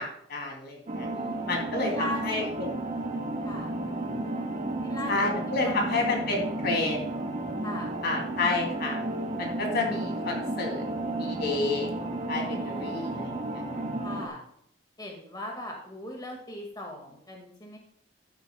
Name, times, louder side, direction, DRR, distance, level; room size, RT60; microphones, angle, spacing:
voice 1, 0.0-1.1 1.5-2.7 5.1-7.3 8.0-9.0 9.4-10.8 11.2-11.9 12.3-13.6, left 3 dB, 60° left, 1 dB, 2.8 m, -30 dB
sound 1, 0.9-14.3, right 2 dB, 40° right, 1.7 m, -33 dB
voice 2, 1.1-2.5 3.4-3.7 4.8-5.3 5.7-6.1 7.6-7.9 12.4-13.4 14.0-14.4 15.0-17.8, left 1 dB, 20° left, 0 dB, 1.9 m, -39 dB
14.0 x 9.1 x 2.3 m, 0.69 s
head